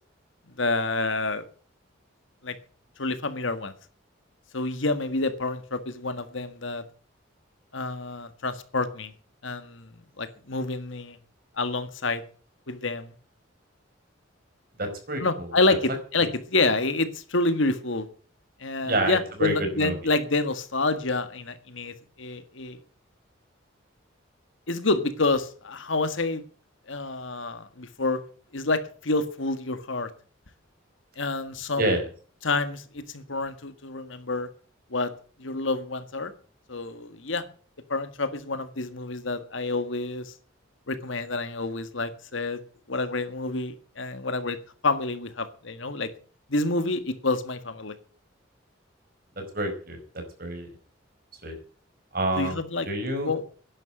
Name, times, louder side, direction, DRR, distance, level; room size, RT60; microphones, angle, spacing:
voice 1, 0.6-1.4 2.4-2.6 3.0-3.7 4.5-6.8 7.7-9.1 9.4-11.2 11.6-12.2 12.7-13.1 15.2-18.1 18.6-22.8 24.7-26.4 26.9-28.2 28.5-30.1 31.2-31.8 32.4-34.5 34.9-35.1 35.4-36.3 36.7-37.4 37.9-40.3 40.9-42.6 42.9-44.6 44.8-46.1 46.5-48.0 52.4-52.9 53.2-53.4, left 3 dB, 70° left, 10 dB, 1.7 m, -28 dB
voice 2, 14.8-15.5 16.2-16.3 18.8-19.9 31.8-32.1 49.5-50.0 50.4-50.7 51.4-51.5 52.1-52.6 52.8-53.3, right 1 dB, 45° right, 5 dB, 4.9 m, -28 dB
11.0 x 11.0 x 7.8 m, 0.42 s
head